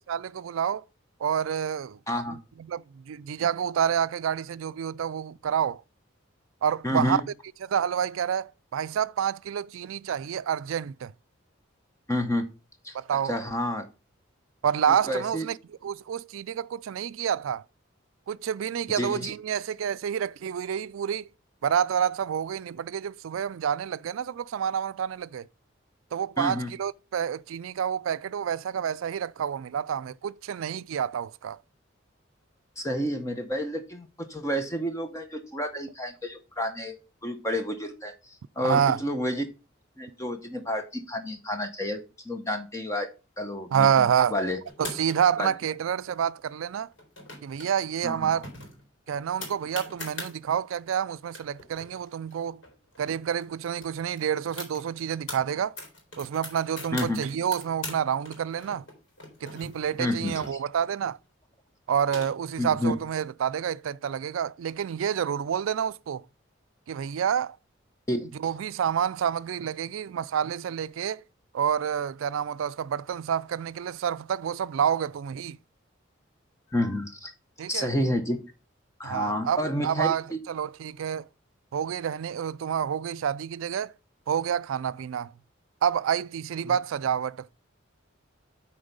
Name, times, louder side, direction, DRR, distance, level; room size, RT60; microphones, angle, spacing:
voice 1, 0.1-0.8 1.2-2.0 2.3-5.8 6.6-7.2 7.6-11.1 12.9-13.3 14.6-15.6 15.8-17.6 18.3-21.3 21.6-25.5 26.1-31.6 38.6-39.0 43.7-44.4 44.8-46.9 47.4-48.5 49.1-52.6 53.0-55.8 56.2-58.8 59.4-61.2 61.9-66.2 66.9-67.6 68.4-71.2 71.5-75.6 77.6-77.9 79.0-81.3 81.7-83.9 84.3-85.3 85.8-87.5, right 8 dB, 80° right, 0.3 m, -28 dB
voice 2, 2.1-2.4 6.8-7.2 12.1-12.5 12.8-13.0 13.2-13.9 15.1-15.5 18.9-19.3 26.4-26.7 32.8-37.0 37.2-39.5 40.0-42.0 42.2-43.1 43.4-44.6 45.4-45.5 48.0-48.3 56.9-57.2 60.0-60.3 62.6-62.9 68.1-68.3 76.7-77.3 77.7-78.4 79.0-80.4 86.6-86.8, left 1 dB, 15° left, 0.8 m, -30 dB
sound 1, 44.7-45.4 46.9-47.7 48.0-48.1 48.4-50.3 51.0-51.1 51.3-53.1 53.4-53.5 53.8-55.4 55.8-58.0 58.3-60.9 61.7-62.6, left 2 dB, 65° left, 3.5 m, -41 dB
8.7 x 4.4 x 5.3 m
head